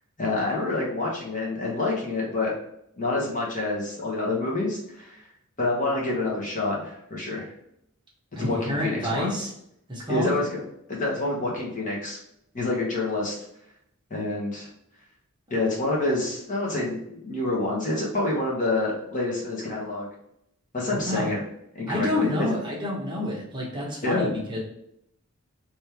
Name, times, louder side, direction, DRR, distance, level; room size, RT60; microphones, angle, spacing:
voice 1, 0.2-2.5 3.0-5.2 5.6-7.5 8.4-9.3 10.1-10.6 10.9-12.2 12.5-13.3 14.1-14.7 15.5-20.1 20.7-21.4 21.7-22.5 24.0-24.3, left 2 dB, 35° left, -3 dB, 1.2 m, -27 dB
voice 2, 8.4-9.5 9.9-10.3 20.9-21.3 21.9-24.6, left 1 dB, 20° right, -4 dB, 1.2 m, -28 dB
3.5 x 3.2 x 4.4 m, 0.75 s
head